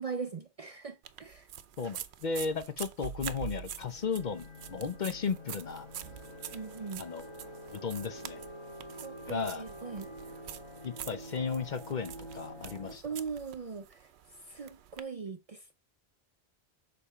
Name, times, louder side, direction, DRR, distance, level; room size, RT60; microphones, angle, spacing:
voice 1, 0.0-1.5 6.5-7.0 9.0-10.1 13.0-14.1 14.5-15.7, right 5 dB, 45° right, 0.5 m, -40 dB
sound 1, 1.0-15.0, right 10 dB, 85° right, 0.9 m, -46 dB
voice 2, 1.8-5.9 7.0-7.3 7.7-8.4 9.3-9.6 10.8-13.0, left 5 dB, 55° left, 0.7 m, -35 dB
sound 2, 3.4-12.9, equal, 25° left, 1.4 m, -47 dB
6.8 x 4.2 x 5.5 m
omnidirectional pair, 1.1 m